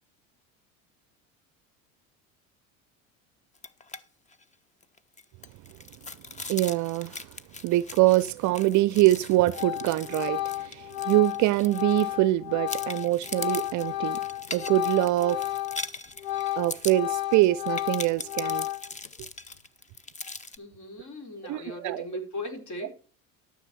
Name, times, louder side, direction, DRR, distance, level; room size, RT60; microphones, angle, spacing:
sound 1, 3.5-4.0 4.3-4.4 4.8-12.3 12.7-20.6, left 3 dB, 15° left, 1.0 m, -40 dB
voice 1, 6.5-7.3 7.6-14.2 14.5-15.5 16.6-18.7 21.5-22.0, right 16 dB, 45° right, 0.6 m, -24 dB
Organ, 9.0-9.2 9.5-15.9 16.2-19.1, left 15 dB, 75° left, 0.8 m, -32 dB
voice 2, 20.6-22.9, left 1 dB, 45° left, 4.4 m, -38 dB
13.0 x 7.2 x 4.6 m
hypercardioid pair, 75°, 41 cm